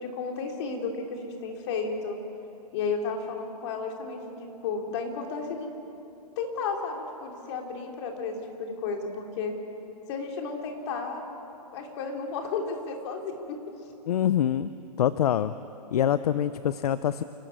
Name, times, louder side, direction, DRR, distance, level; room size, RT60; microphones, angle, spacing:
voice 1, 0.0-2.2 2.7-5.7 6.4-9.5 10.1-11.3 11.7-13.6, left 4 dB, 40° left, 2 dB, 3.6 m, -33 dB
voice 2, 14.1-14.7 15.0-15.5 15.9-17.2, left 10 dB, 65° left, 14 dB, 0.7 m, -25 dB
28.5 x 12.5 x 9.5 m, 2.8 s
hypercardioid pair, 145°, 21 cm